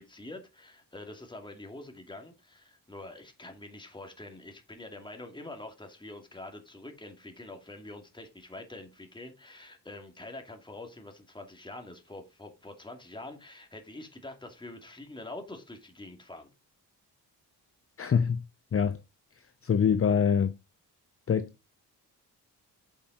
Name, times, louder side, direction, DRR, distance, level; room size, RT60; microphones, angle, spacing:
voice 1, 0.0-16.5, left 2 dB, 10° left, 2.3 m, -45 dB
voice 2, 18.0-18.4 18.7-19.0 19.6-20.6 21.3-21.5, left 7 dB, 35° left, 0.7 m, -24 dB
9.0 x 5.5 x 3.9 m
cardioid pair, 75°, 39 cm